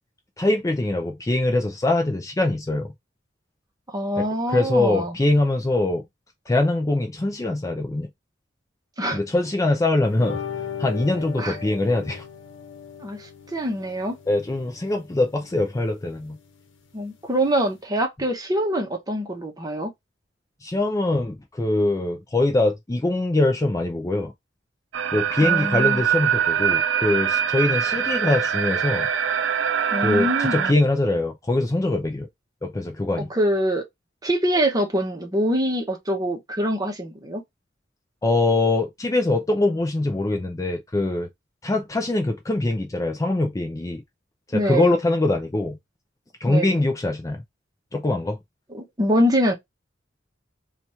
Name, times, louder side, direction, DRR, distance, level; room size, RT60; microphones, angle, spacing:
voice 1, 0.4-2.9 4.2-6.0 6.5-8.1 9.1-10.4 10.8-12.2 14.3-16.4 20.6-24.3 25.1-29.1 30.0-32.3 32.6-33.3 38.2-41.3 41.6-44.0 44.5-45.8 46.4-47.4 47.9-48.4, left 2 dB, 15° left, 0.4 m, -23 dB
voice 2, 3.9-5.1 9.0-9.2 11.4-11.6 13.0-14.2 16.9-19.9 25.4-26.0 29.9-30.7 33.2-33.8 34.2-37.4 44.5-45.0 46.5-46.8 48.7-49.5, equal, 20° right, 0.8 m, -24 dB
sound 1, 10.1-17.8, left 7 dB, 85° left, 0.9 m, -38 dB
sound 2, 24.9-30.7, right 8 dB, 70° right, 0.4 m, -23 dB
2.9 x 2.4 x 4.2 m
head